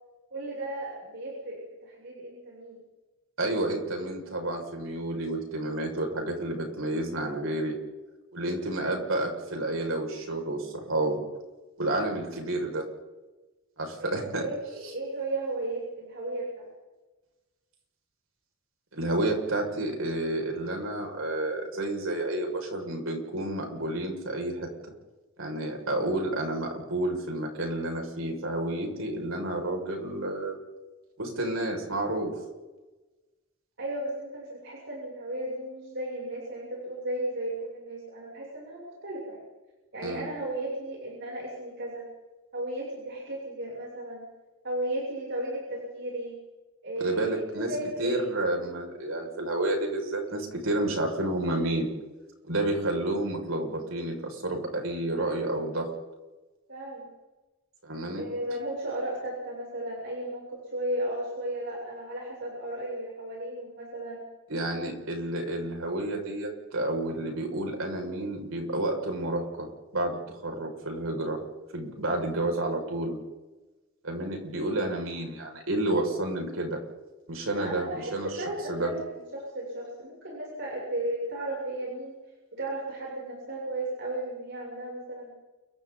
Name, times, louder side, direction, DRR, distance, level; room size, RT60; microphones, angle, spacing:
voice 1, 0.3-2.8 14.0-16.7 33.8-39.4 39.9-42.0 42.5-44.2 44.6-46.4 46.8-48.3 55.1-55.5 56.7-57.1 58.1-64.2 77.5-82.1 82.5-85.3, right 1 dB, 60° right, -4 dB, 7.7 m, -35 dB
voice 2, 3.4-7.8 8.3-11.2 11.8-12.8 13.8-14.4 18.9-24.7 25.4-30.6 31.2-32.3 40.0-40.3 47.0-47.7 48.0-51.9 52.5-55.9 57.8-58.3 64.5-71.4 71.7-73.2 74.0-76.8 77.3-78.4 78.7-78.9, right 1 dB, 85° right, 1 dB, 6.2 m, -30 dB
29.5 x 24.0 x 4.1 m, 1.1 s
head